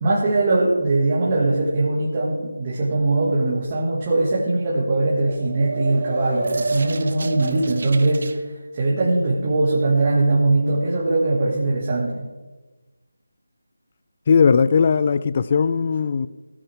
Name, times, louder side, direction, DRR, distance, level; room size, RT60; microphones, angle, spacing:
voice 1, 0.0-8.4 8.7-12.3, right 2 dB, 25° right, 2.2 m, -21 dB
sound 1, 5.0-8.4, right 2 dB, 50° right, 1.0 m, -29 dB
voice 2, 14.3-16.3, left 6 dB, 30° left, 0.3 m, -18 dB
17.5 x 10.0 x 3.7 m
figure-of-eight pair, 170°, 0 cm